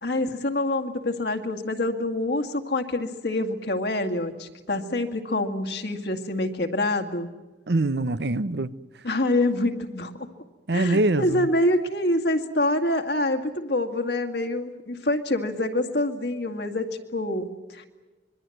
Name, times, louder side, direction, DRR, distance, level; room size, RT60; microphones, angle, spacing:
voice 1, 0.0-7.3 9.0-10.3 10.7-17.9, left 1 dB, 65° left, 2.1 m, -26 dB
voice 2, 7.7-8.7 10.7-11.5, right 2 dB, 65° right, 0.8 m, -24 dB
26.0 x 22.5 x 7.9 m
head